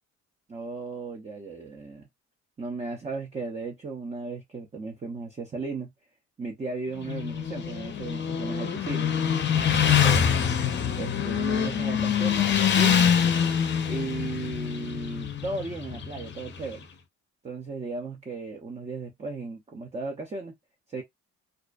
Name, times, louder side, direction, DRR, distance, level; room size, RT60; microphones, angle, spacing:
voice 1, 0.5-2.1 2.6-5.9 6.4-9.1 10.0-10.2 11.0-13.1 13.9-16.9 17.4-20.6 20.9-21.0, right 3 dB, 20° right, 0.5 m, -35 dB
Motorcycle, 7.0-16.7, left 8 dB, 40° left, 0.6 m, -25 dB
2.4 x 2.1 x 2.4 m
cardioid pair, 90°, 30 cm